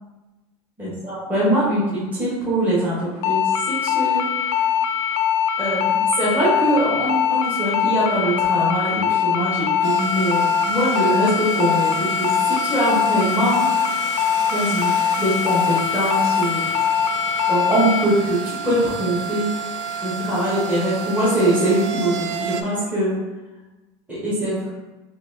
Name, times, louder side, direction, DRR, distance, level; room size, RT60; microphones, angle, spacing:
voice 1, 0.8-4.2 5.6-13.7 14.5-16.7 17.5-19.5 20.0-23.2 24.1-24.7, right 1 dB, 10° right, -9 dB, 1.4 m, -22 dB
sound 1, 3.2-18.0, left 8 dB, 75° left, 0.4 m, -22 dB
sound 2, 9.8-22.6, right 6 dB, 90° right, 0.4 m, -30 dB
4.2 x 2.9 x 2.8 m, 1.1 s
supercardioid pair, 135°, 15 cm